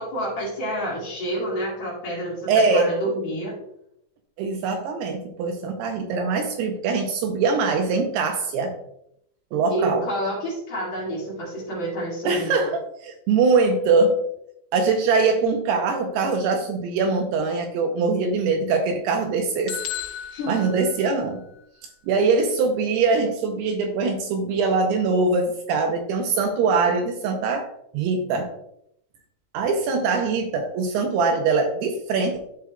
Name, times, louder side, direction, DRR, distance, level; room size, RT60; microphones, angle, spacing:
voice 1, 0.0-3.5 9.7-12.7 20.3-20.8, right 1 dB, 50° left, -5 dB, 2.8 m, -29 dB
voice 2, 2.5-2.9 4.4-8.7 9.5-10.1 12.2-14.2 14.7-19.8 20.5-21.4 22.1-27.7 27.9-28.5 29.5-32.4, right 4 dB, 80° right, 4 dB, 2.5 m, -22 dB
sound 1, 19.7-21.6, left 11 dB, 85° left, 2.2 m, -35 dB
13.0 x 4.7 x 2.2 m, 0.76 s
omnidirectional pair, 5.1 m